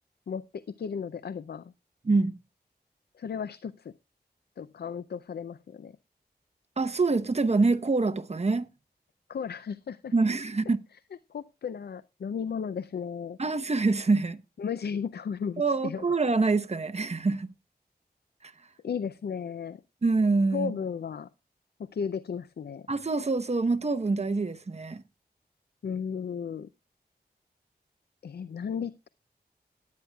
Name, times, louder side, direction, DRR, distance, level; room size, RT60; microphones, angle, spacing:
voice 1, 0.3-1.7 3.2-3.9 4.6-6.0 9.3-10.1 11.3-13.4 14.6-16.2 18.8-19.8 20.5-21.3 21.8-22.9 25.8-26.7 28.2-29.1, left 6 dB, 75° left, 0.5 m, -35 dB
voice 2, 2.0-2.4 6.8-8.7 10.1-10.8 13.4-14.4 15.6-17.5 20.0-20.7 22.9-25.0, right 3 dB, 40° right, 0.9 m, -25 dB
18.0 x 9.5 x 2.3 m
cardioid pair, 55°, 17 cm